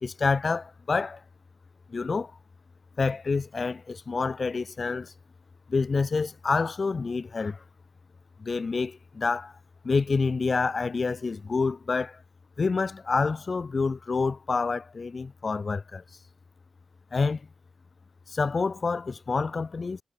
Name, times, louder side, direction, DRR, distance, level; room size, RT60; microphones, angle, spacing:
voice 1, 0.0-1.2 1.9-2.3 3.0-5.1 5.7-7.6 8.4-9.5 9.8-12.2 12.6-16.0 17.1-17.4 18.3-20.0, left 4 dB, 50° left, 2.2 m, -27 dB
supercardioid pair, 45°, 0 cm